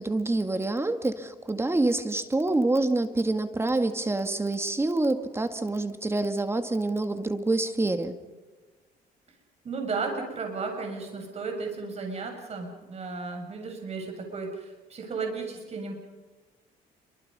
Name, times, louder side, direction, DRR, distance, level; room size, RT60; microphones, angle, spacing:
voice 1, 0.0-8.2, right 2 dB, 15° right, 8 dB, 2.1 m, -27 dB
voice 2, 9.6-15.9, right 4 dB, 40° right, 2 dB, 7.3 m, -34 dB
28.5 x 25.0 x 5.6 m, 1.3 s
cardioid pair, 110°, 17 cm